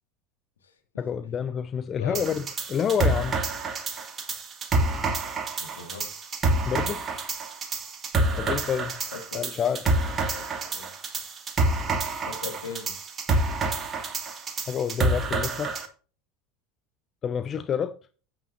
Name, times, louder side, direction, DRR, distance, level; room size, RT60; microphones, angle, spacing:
voice 1, 1.0-2.4 2.7-3.4 6.7-7.0 8.4-8.9 9.3-9.9 14.7-15.8 17.2-17.9, left 7 dB, 30° left, 0.6 m, -28 dB
voice 2, 2.0-2.3 5.6-6.1 8.3-8.6 9.1-9.4 10.3-10.5 10.7-10.9 12.3-13.0, left 5 dB, 75° left, 2.3 m, -39 dB
sound 1, 2.1-15.9, right 2 dB, 30° right, 2.4 m, -28 dB
12.0 x 9.1 x 2.8 m
figure-of-eight pair, 75°, 0 cm